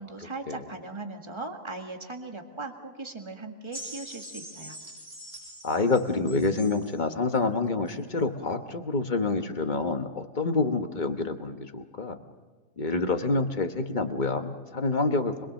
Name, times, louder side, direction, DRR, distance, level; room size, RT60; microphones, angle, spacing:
voice 1, 0.0-4.8, right 3 dB, 20° right, 4 dB, 1.8 m, -39 dB
sound 1, 3.7-7.0 7.9-8.0, equal, 55° right, 5.9 m, -43 dB
voice 2, 5.6-12.2 12.8-15.4, left 3 dB, 35° left, 7 dB, 1.3 m, -27 dB
25.5 x 22.0 x 6.5 m, 1.3 s
omnidirectional pair, 1.4 m